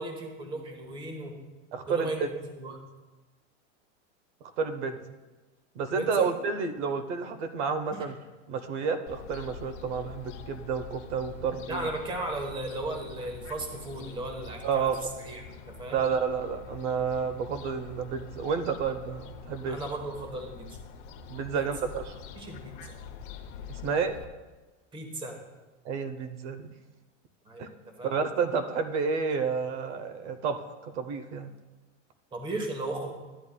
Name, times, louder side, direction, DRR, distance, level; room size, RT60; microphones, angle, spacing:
voice 1, 0.0-1.3 1.9-2.8 5.9-6.3 11.7-14.9 15.2-15.4 15.7-16.0 19.6-20.7 21.5-21.6 22.4-22.9 24.9-25.3 27.5-27.7 28.0-28.1 32.3-33.1, right 2 dB, 15° right, 3 dB, 1.0 m, -35 dB
voice 2, 1.7-2.1 4.6-5.0 5.7-8.2 8.5-11.9 14.6-15.0 15.9-19.8 21.3-22.2 23.7-24.1 25.8-26.7 27.6-27.7 28.0-31.5, right 6 dB, 70° right, 8 dB, 0.9 m, -30 dB
Fowl, 9.1-24.3, left 6 dB, 45° left, 0.7 m, -45 dB
12.5 x 8.7 x 2.2 m, 1.2 s
supercardioid pair, 155°, 36 cm